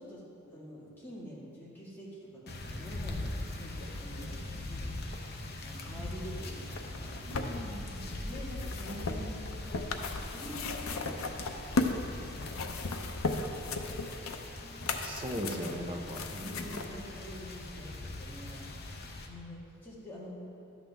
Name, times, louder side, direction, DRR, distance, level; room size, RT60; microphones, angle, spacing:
voice 1, 0.0-3.3 3.6-4.4 4.7-5.1 5.6-7.1 8.2-14.9 15.4-16.0 16.4-18.7 19.3-20.3, equal, 10° left, -7 dB, 1.8 m, -47 dB
sound 1, 2.5-19.3, left 2 dB, 45° left, 0.8 m, -41 dB
sound 2, 6.9-12.0 12.4-16.9 17.7-17.8, left 3 dB, 80° left, 0.6 m, -36 dB
voice 2, 7.3-8.2 15.0-16.8, equal, 25° right, 1 dB, 0.7 m, -39 dB
12.0 x 8.0 x 3.5 m, 2.7 s
head